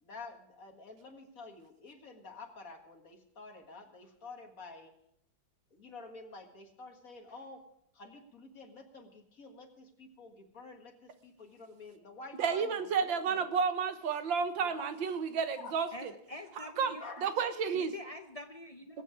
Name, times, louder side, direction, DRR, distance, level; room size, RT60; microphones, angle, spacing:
voice 1, 0.0-4.9 5.7-13.4 14.6-14.9 15.6-15.7 17.0-17.3, left 3 dB, 50° left, 3 dB, 2.1 m, -50 dB
voice 2, 12.4-16.1 16.6-17.9 18.9-19.0, right 6 dB, 90° right, 9 dB, 1.8 m, -32 dB
voice 3, 15.9-17.0 17.7-19.0, left 1 dB, 75° left, 4 dB, 0.3 m, -45 dB
21.5 x 8.5 x 4.8 m, 0.73 s
omnidirectional pair, 2.0 m